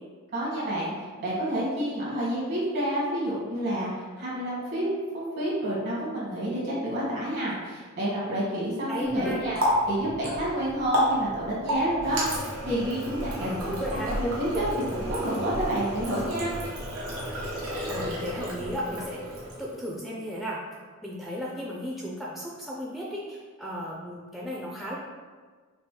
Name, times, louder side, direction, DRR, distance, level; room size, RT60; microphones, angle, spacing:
voice 1, 0.3-0.9 1.2-3.9 4.2-9.6 9.9-13.7 14.0-16.5, right 1 dB, 55° right, -6 dB, 1.4 m, -29 dB
voice 2, 8.9-9.4 13.4-14.1 17.9-19.2 19.6-20.6 21.0-25.0, equal, ahead, -4 dB, 0.4 m, -34 dB
Water tap faucet, 9.0-19.8, equal, 85° right, 1.0 m, -31 dB
5.1 x 2.0 x 3.1 m, 1.4 s
head